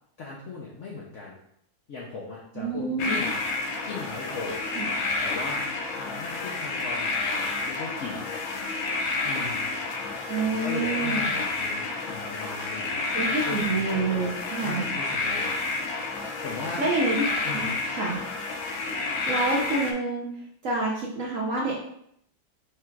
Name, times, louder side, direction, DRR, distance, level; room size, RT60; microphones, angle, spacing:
voice 1, 0.2-1.3 1.9-3.4 3.8-4.6 4.9-8.3 9.2-9.7 10.5-14.0 14.6-15.5 16.4-16.8 17.4-17.7, left 4 dB, 65° left, -3 dB, 0.7 m, -38 dB
voice 2, 2.6-3.2 4.7-4.9 10.3-11.3 13.1-14.9 16.8-17.3 17.5-18.2 19.3-20.3 20.6-21.8, right 3 dB, 60° right, -3 dB, 0.8 m, -27 dB
sound 1, 3.0-19.9, left 3 dB, 90° left, 1.4 m, -30 dB
4.8 x 2.4 x 4.4 m, 0.73 s
omnidirectional pair, 2.1 m